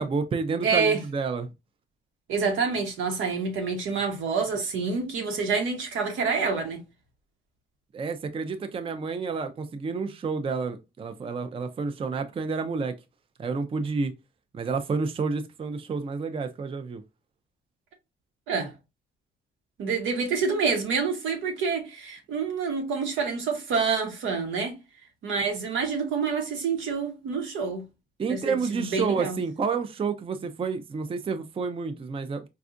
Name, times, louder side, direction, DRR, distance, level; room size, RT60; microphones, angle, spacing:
voice 1, 0.0-1.5 7.9-13.0 13.4-14.1 14.5-17.0 28.2-32.5, right 5 dB, 25° right, 0.4 m, -29 dB
voice 2, 0.6-1.0 2.3-6.8 18.5-18.7 19.8-24.8 25.2-27.8 28.3-29.4, right 5 dB, 85° right, 1.1 m, -27 dB
4.2 x 2.4 x 2.4 m
cardioid pair, 90°, 20 cm